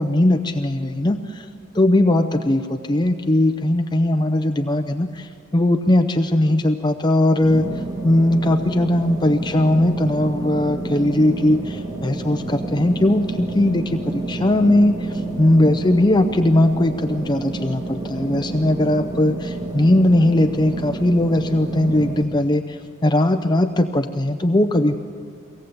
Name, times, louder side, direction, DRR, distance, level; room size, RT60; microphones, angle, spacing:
voice 1, 0.0-1.5 1.7-7.7 8.0-24.9, left 1 dB, 20° left, 6 dB, 0.6 m, -19 dB
sound 1, 7.4-22.2, right 2 dB, 20° right, 1.8 m, -30 dB
23.5 x 18.0 x 7.9 m, 2.2 s
head